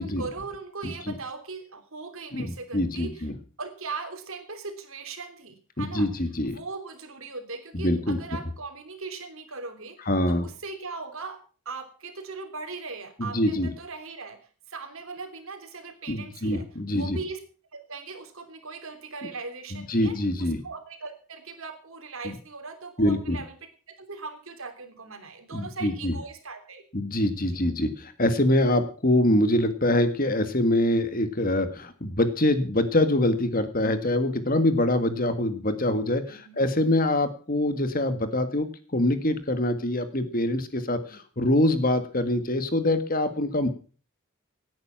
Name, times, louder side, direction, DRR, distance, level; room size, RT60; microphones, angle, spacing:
voice 1, 0.0-3.3 3.6-6.1 6.4-10.0 10.3-11.4 11.6-14.4 14.7-17.4 17.7-23.5 23.9-26.8 36.3-36.6, right 4 dB, 70° right, 7 dB, 3.3 m, -39 dB
voice 2, 2.3-3.3 5.8-6.6 7.7-8.2 10.1-10.5 13.2-13.7 16.1-17.2 19.7-20.6 22.2-22.3 23.0-23.4 25.5-26.2 26.9-43.7, left 1 dB, 40° left, 10 dB, 1.8 m, -24 dB
18.0 x 9.7 x 5.9 m, 0.40 s
head